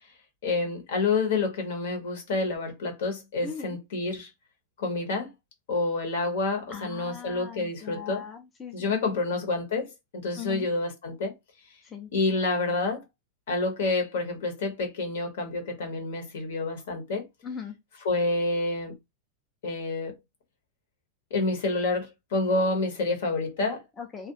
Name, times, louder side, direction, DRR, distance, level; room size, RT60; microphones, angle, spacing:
voice 1, 0.4-4.3 4.8-5.3 5.7-8.2 8.7-11.3 12.1-13.0 13.5-17.3 18.0-18.9 19.6-20.1 21.3-23.8, left 3 dB, 75° left, 1.1 m, -28 dB
voice 2, 3.4-3.8 6.7-9.2 10.4-10.7 11.8-12.1 17.4-17.7 24.0-24.3, left 6 dB, 15° left, 0.5 m, -39 dB
2.4 x 2.1 x 2.6 m
supercardioid pair, 150°, 0 cm